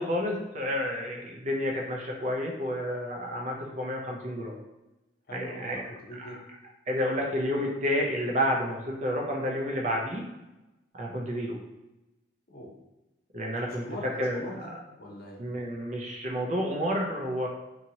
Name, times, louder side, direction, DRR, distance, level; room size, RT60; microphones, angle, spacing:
voice 1, 0.0-4.6 5.3-5.8 6.2-6.3 6.9-10.2 10.9-11.6 13.3-13.9 14.2-14.4 15.4-17.5, equal, 40° right, 0 dB, 0.5 m, -30 dB
voice 2, 5.3-6.4 12.5-12.7 13.8-14.7 15.0-15.4, left 1 dB, 55° left, -2 dB, 0.7 m, -42 dB
2.8 x 2.8 x 2.7 m, 1.0 s
head